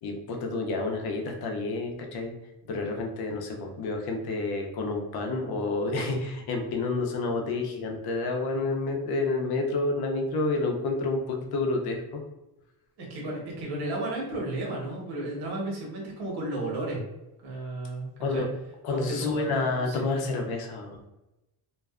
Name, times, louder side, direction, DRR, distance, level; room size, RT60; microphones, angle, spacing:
voice 1, 0.0-2.3 2.7-12.2 18.2-18.5 18.8-21.1, left 3 dB, 70° left, 2 dB, 0.6 m, -29 dB
voice 2, 13.0-17.0 17.4-18.4 18.9-20.1, right 1 dB, 85° right, -3 dB, 1.2 m, -33 dB
2.5 x 2.3 x 2.3 m, 0.96 s
cardioid pair, 150°, 39 cm